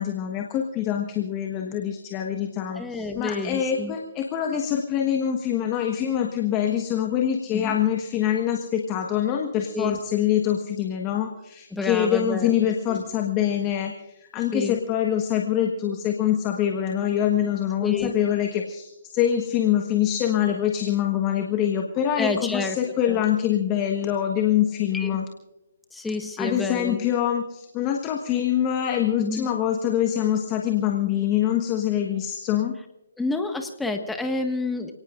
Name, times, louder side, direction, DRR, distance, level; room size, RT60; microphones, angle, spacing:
voice 1, 0.0-25.2 26.4-32.7, left 10 dB, 25° left, 3 dB, 1.4 m, -25 dB
voice 2, 2.7-3.9 7.5-7.8 9.7-10.0 11.7-12.5 12.9-13.0 14.5-14.8 17.8-18.1 22.2-22.8 23.1-23.2 24.9-25.2 25.9-27.0 29.2-29.5 33.2-34.9, left 3 dB, 5° left, 5 dB, 1.6 m, -29 dB
29.0 x 18.5 x 2.5 m, 1.0 s
hypercardioid pair, 145°, 0 cm